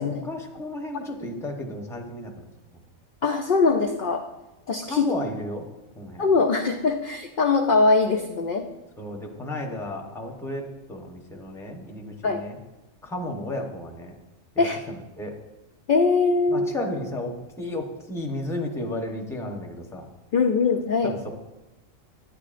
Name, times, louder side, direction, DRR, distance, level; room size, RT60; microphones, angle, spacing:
voice 1, 0.0-2.5 4.9-5.7 6.0-6.3 9.0-12.6 13.0-14.1 14.5-15.4 16.5-20.1 21.0-21.4, left 1 dB, 5° left, 1 dB, 0.8 m, -33 dB
voice 2, 3.2-4.2 4.7-5.1 6.2-8.7 12.2-12.4 14.6-14.8 15.9-16.7 20.3-21.1, left 4 dB, 55° left, 3 dB, 0.6 m, -22 dB
11.0 x 9.3 x 2.5 m, 1.0 s
omnidirectional pair, 1.3 m